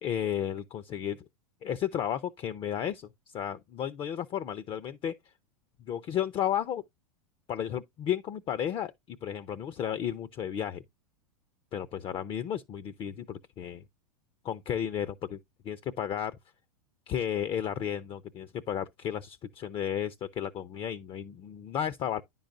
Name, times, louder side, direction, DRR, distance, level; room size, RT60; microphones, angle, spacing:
voice 1, 0.0-1.2 1.6-5.1 5.8-6.8 7.5-10.8 11.7-13.8 14.4-15.4 15.6-16.3 17.1-22.2, left 9 dB, 25° left, 0.5 m, -33 dB
10.0 x 5.4 x 2.6 m
figure-of-eight pair, 95°, 19 cm